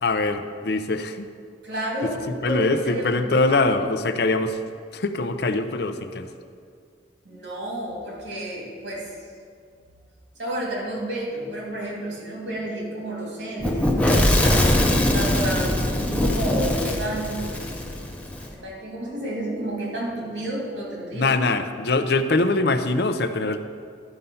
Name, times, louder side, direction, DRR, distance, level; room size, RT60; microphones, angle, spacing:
voice 1, 0.0-1.3 2.3-4.6 4.9-6.3 21.1-23.6, left 3 dB, 60° left, 9 dB, 0.5 m, -23 dB
voice 2, 1.6-3.3 7.2-9.1 10.4-14.2 15.1-17.6 18.5-21.3, right 1 dB, 85° right, -3 dB, 2.5 m, -31 dB
Fire / Explosion, 13.6-18.5, left 1 dB, 5° left, 0.7 m, -22 dB
11.5 x 5.4 x 5.6 m, 2.2 s
head